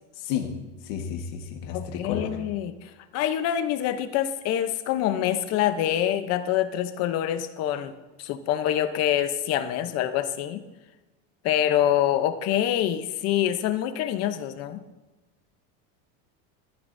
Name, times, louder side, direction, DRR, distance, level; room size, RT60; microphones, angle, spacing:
voice 1, 0.2-0.5 0.8-2.4, left 8 dB, 80° left, 3 dB, 1.6 m, -32 dB
voice 2, 1.7-7.9 8.2-10.6 11.4-14.8, left 11 dB, 45° left, 10 dB, 0.8 m, -26 dB
14.5 x 13.5 x 2.7 m, 1.1 s
cardioid pair, 165°, 36 cm